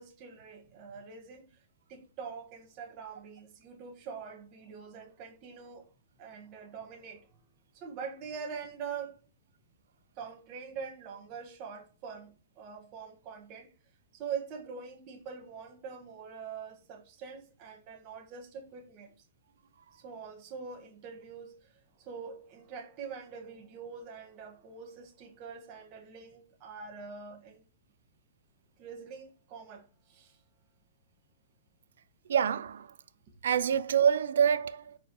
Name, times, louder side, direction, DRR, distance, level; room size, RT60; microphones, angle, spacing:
voice 1, 0.0-1.5 1.9-5.9 6.2-7.3 7.7-9.2 10.2-13.7 14.1-19.2 19.9-27.6 28.8-30.4, right 6 dB, 35° right, 1.8 m, -44 dB
voice 2, 32.3-32.9 33.4-35.0, right 8 dB, 80° right, 0.5 m, -26 dB
4.8 x 4.6 x 4.6 m
hypercardioid pair, 150°, 0 cm